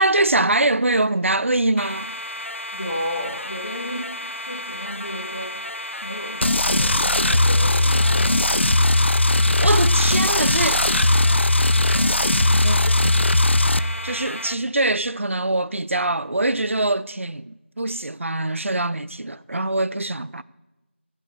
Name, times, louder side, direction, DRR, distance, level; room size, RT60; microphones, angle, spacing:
voice 1, 0.0-2.1 9.6-11.2 11.9-12.1 12.5-13.3 13.8-20.4, right 2 dB, 85° right, 0.5 m, -23 dB
sound 1, 1.8-14.5, left 1 dB, 85° left, 0.9 m, -33 dB
voice 2, 2.7-4.0 4.5-5.5 6.0-8.3, equal, 35° left, 2.8 m, -32 dB
sound 2, 6.4-13.8, left 2 dB, 65° left, 0.5 m, -18 dB
16.0 x 7.3 x 6.8 m
figure-of-eight pair, 180°, 7 cm